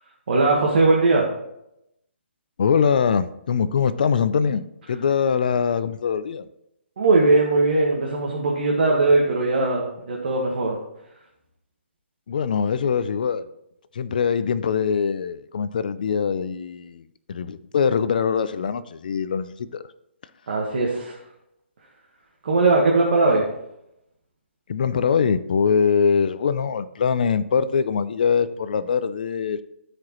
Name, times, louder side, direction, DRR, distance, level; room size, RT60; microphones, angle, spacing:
voice 1, 0.3-1.2 7.0-10.8 20.5-21.2 22.4-23.4, right 3 dB, 50° right, 1.4 m, -19 dB
voice 2, 2.6-6.5 12.3-13.5 13.9-19.8 24.7-29.6, left 6 dB, 40° left, 0.4 m, -23 dB
13.0 x 4.9 x 3.0 m
hypercardioid pair, 175°, 7 cm